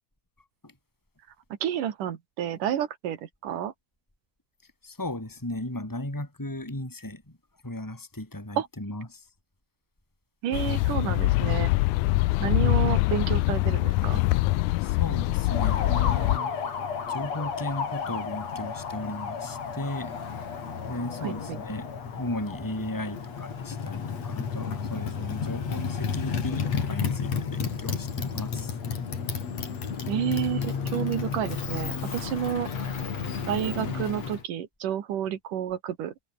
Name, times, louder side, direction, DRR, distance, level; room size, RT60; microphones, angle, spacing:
voice 1, 1.6-3.7 8.6-8.7 10.4-11.7 12.4-14.2 21.2-21.6 30.1-32.7 33.5-36.1, right 10 dB, 85° right, 3.4 m, -30 dB
voice 2, 4.8-7.4 7.6-9.3 14.8-16.6 17.1-20.2 20.7-21.9 22.2-28.7 33.9-34.0, left 1 dB, 5° left, 4.3 m, -36 dB
sound 1, 10.5-16.4, left 19 dB, 80° left, 1.9 m, -24 dB
Motorcycle, 15.4-34.4, left 6 dB, 55° left, 4.3 m, -32 dB
omnidirectional pair, 3.6 m